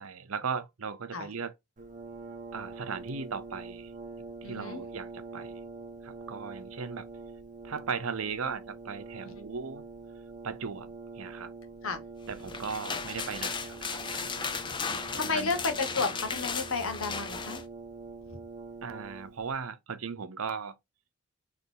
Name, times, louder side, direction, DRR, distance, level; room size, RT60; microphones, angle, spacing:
voice 1, 0.0-1.5 2.5-3.9 4.4-5.5 6.0-7.1 7.6-9.8 10.4-11.5 12.3-14.4 15.2-15.5 18.8-20.8, right 5 dB, 85° right, 0.7 m, -37 dB
Brass instrument, 1.8-19.6, right 3 dB, 35° right, 0.8 m, -45 dB
voice 2, 4.4-4.8 9.2-9.3 11.8-12.0 15.1-17.6, left 4 dB, 80° left, 1.1 m, -32 dB
sound 1, 12.3-17.6, left 5 dB, 20° left, 0.4 m, -35 dB
4.0 x 3.3 x 3.7 m
head